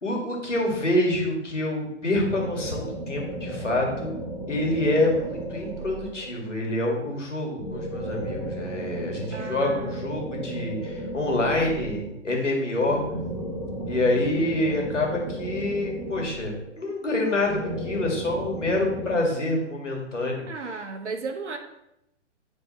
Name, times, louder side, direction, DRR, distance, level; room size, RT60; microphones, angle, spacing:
voice 1, 0.0-4.2 4.5-13.0 13.8-20.5, left 1 dB, 80° left, 0 dB, 2.1 m, -26 dB
sound 1, 2.3-6.5 7.6-12.2 12.8-16.9 17.5-19.1, right 1 dB, 10° right, 0.8 m, -34 dB
voice 2, 9.3-10.0 20.4-21.6, right 4 dB, 70° right, 4 dB, 1.0 m, -35 dB
9.0 x 3.6 x 4.2 m, 0.83 s
figure-of-eight pair, 120°, 36 cm